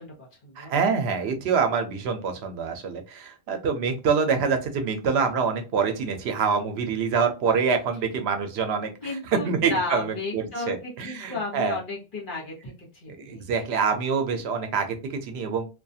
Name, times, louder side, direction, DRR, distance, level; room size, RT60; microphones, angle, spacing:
voice 1, 0.0-0.7 9.0-13.6, left 3 dB, 55° left, -4 dB, 1.2 m, -34 dB
voice 2, 0.6-9.1 9.4-11.8 13.1-15.0 15.2-15.7, right 5 dB, 80° right, 6 dB, 0.8 m, -26 dB
2.4 x 2.3 x 2.6 m, 0.30 s
omnidirectional pair, 1.1 m